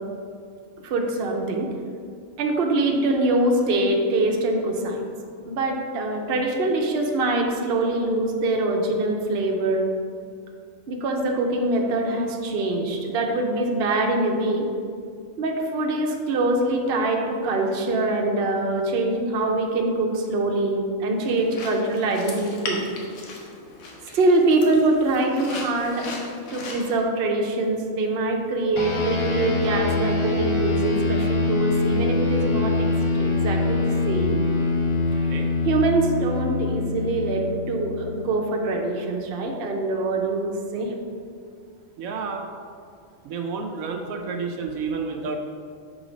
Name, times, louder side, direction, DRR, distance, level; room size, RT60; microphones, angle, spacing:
voice 1, 0.8-1.7 2.4-5.0 5.5-9.8 10.9-14.7 15.4-22.8 24.1-26.1 26.5-32.9 33.2-34.4 35.6-40.9, right 2 dB, 55° right, 1 dB, 0.9 m, -24 dB
sound 1, 21.2-27.0, left 3 dB, 85° left, 1.4 m, -38 dB
sound 2, 28.8-38.5, left 3 dB, 35° left, 0.5 m, -24 dB
voice 2, 42.0-42.4 43.3-45.4, right 5 dB, 80° right, 3 dB, 1.0 m, -30 dB
6.3 x 4.0 x 5.1 m, 2.2 s
omnidirectional pair, 1.4 m